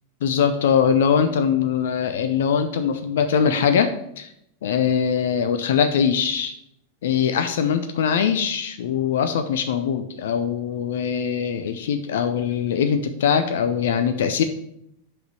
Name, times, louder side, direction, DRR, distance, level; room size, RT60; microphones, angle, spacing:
voice 1, 0.2-3.9 4.2-4.3 4.6-6.5 7.0-14.4, left 7 dB, 60° left, 9 dB, 0.5 m, -22 dB
5.9 x 5.1 x 6.8 m, 0.77 s
figure-of-eight pair, 90°, 0 cm